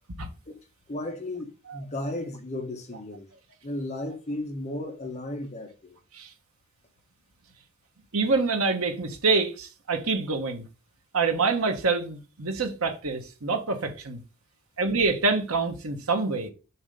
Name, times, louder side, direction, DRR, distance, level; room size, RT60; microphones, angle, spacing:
voice 1, 0.9-3.3 3.6-6.0, left 1 dB, 30° left, 1.3 m, -34 dB
voice 2, 8.1-10.6 11.1-14.2 14.8-16.5, right 4 dB, 70° right, 1.2 m, -26 dB
7.2 x 2.9 x 5.1 m
head